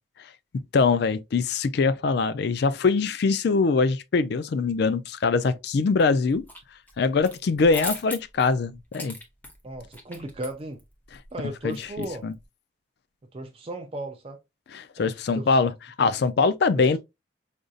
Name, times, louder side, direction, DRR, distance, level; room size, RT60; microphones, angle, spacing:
voice 1, 0.7-6.4 7.0-9.2 11.6-12.3 14.7-15.7 16.0-17.0, left 4 dB, 55° left, 0.3 m, -23 dB
sound 1, 6.0-6.6 6.9-12.4, left 1 dB, 10° left, 0.6 m, -40 dB
voice 2, 9.6-10.8 11.3-12.3 13.3-14.4 15.0-15.6 16.0-16.1 16.7-17.0, right 1 dB, 30° right, 0.4 m, -36 dB
5.0 x 2.6 x 2.3 m
head